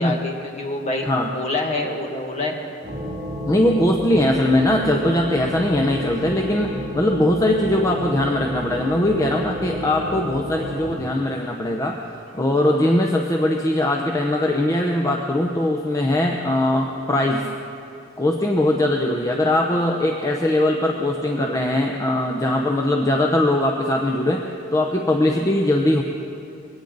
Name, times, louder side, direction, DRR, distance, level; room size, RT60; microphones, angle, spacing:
voice 1, 0.0-1.1 1.3-2.6, left 2 dB, 35° left, 0 dB, 1.9 m, -26 dB
sound 1, 2.8-10.9, equal, 30° right, 3.7 m, -31 dB
voice 2, 3.5-12.0 12.3-17.4 18.2-24.4 24.7-26.0, left 1 dB, 15° left, 2 dB, 0.7 m, -20 dB
21.5 x 17.0 x 4.0 m, 2.8 s
head